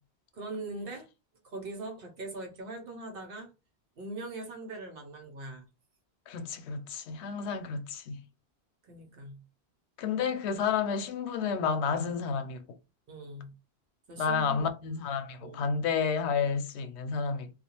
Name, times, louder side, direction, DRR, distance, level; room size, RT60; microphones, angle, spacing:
voice 1, 0.3-1.1 1.5-3.5 4.0-5.7 8.8-9.4 13.1-13.5 14.1-14.7 15.4-15.7, right 2 dB, 60° right, 0.9 m, -41 dB
voice 2, 6.3-8.2 10.0-12.6 14.2-17.5, left 6 dB, 90° left, 0.8 m, -31 dB
2.4 x 2.3 x 2.8 m
omnidirectional pair, 1.1 m